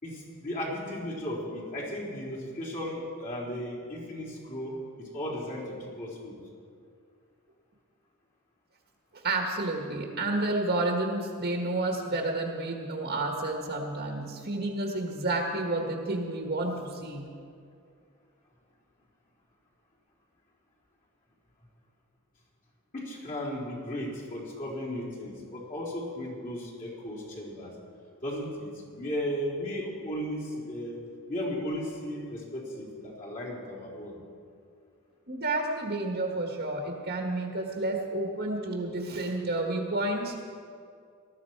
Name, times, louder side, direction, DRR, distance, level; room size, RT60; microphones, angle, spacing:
voice 1, 0.0-6.4 22.9-27.7 28.2-31.0 31.3-34.2, equal, 40° left, -6 dB, 4.1 m, -35 dB
voice 2, 9.1-17.3 35.3-40.3, right 2 dB, 50° right, 1 dB, 1.5 m, -30 dB
19.5 x 13.5 x 4.7 m, 2.3 s
head